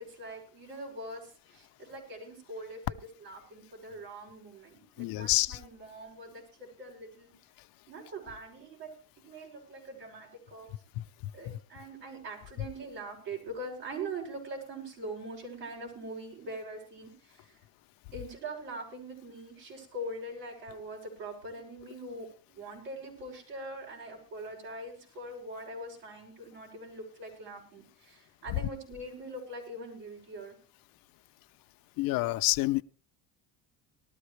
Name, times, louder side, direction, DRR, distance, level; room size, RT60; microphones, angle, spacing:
voice 1, 0.0-7.3 7.9-9.0 9.3-10.7 11.3-17.6 18.1-30.6, right 1 dB, 85° right, 6.7 m, -43 dB
voice 2, 5.0-5.6 11.0-11.6 28.5-28.6 32.0-32.8, left 19 dB, 65° left, 0.7 m, -29 dB
19.5 x 13.0 x 3.3 m
supercardioid pair, 100°, 37 cm